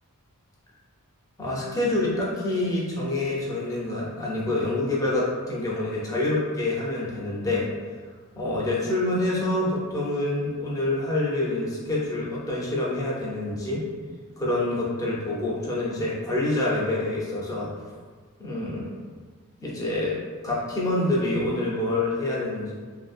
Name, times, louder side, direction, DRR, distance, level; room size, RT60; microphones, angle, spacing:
voice 1, 1.4-7.6 8.3-13.8 14.4-17.7 18.4-18.9 19.6-22.7, left 2 dB, 15° left, -6 dB, 0.6 m, -27 dB
2.7 x 2.6 x 2.4 m, 1.4 s
head